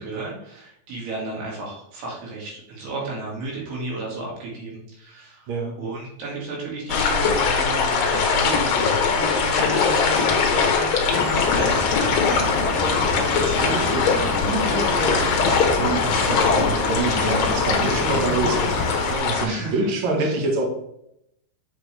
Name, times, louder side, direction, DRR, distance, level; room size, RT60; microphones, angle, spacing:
voice 1, 0.0-5.5 5.8-12.2 19.4-19.9 20.2-20.4, right 3 dB, 80° right, -4 dB, 4.3 m, -33 dB
voice 2, 5.5-5.8 12.8-20.6, right 3 dB, 55° right, 0 dB, 1.5 m, -27 dB
sound 1, 6.9-19.5, left 5 dB, 70° left, 1.6 m, -21 dB
sound 2, 11.1-19.2, left 2 dB, 30° left, 1.8 m, -28 dB
8.2 x 5.3 x 3.4 m, 0.78 s
omnidirectional pair, 4.5 m